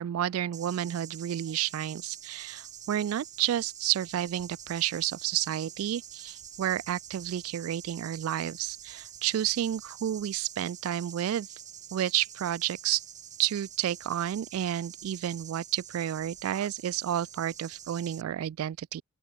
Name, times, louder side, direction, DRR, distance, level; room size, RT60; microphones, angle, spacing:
voice 1, 0.0-11.5 11.9-13.0 13.4-19.0, right 11 dB, 70° right, 0.3 m, -31 dB
sound 1, 0.5-18.2, right 9 dB, 35° right, 5.9 m, -47 dB
open air
head